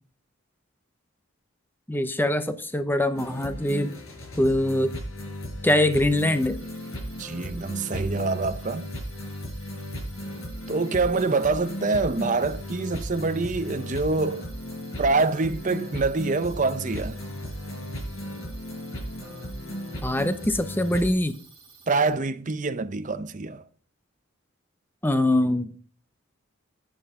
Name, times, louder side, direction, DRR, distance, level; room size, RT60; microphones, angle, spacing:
voice 1, 1.9-3.9 4.4-4.9 5.6-6.6 20.0-21.3 25.0-25.7, left 1 dB, 10° left, 0.7 m, -23 dB
sound 1, 3.1-21.1, equal, 80° left, 5.8 m, -36 dB
sound 2, 6.1-22.1, right 5 dB, 15° right, 4.2 m, -53 dB
voice 2, 7.2-8.9 10.7-14.4 15.0-17.2 21.9-23.6, right 3 dB, 35° right, 0.6 m, -25 dB
11.0 x 9.2 x 3.7 m
head